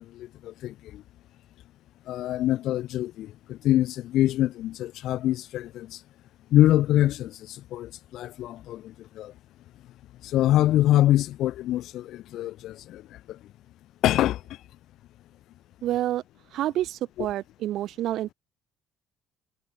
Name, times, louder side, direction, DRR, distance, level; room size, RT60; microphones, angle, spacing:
voice 1, 0.1-1.0 2.1-6.0 6.5-9.3 10.2-13.0 13.3-13.4 14.0-14.4, left 14 dB, 60° left, 1.2 m, -25 dB
voice 2, 15.8-16.2 16.5-18.3, right 13 dB, 55° right, 1.2 m, -28 dB
cardioid pair, 165°, 0 cm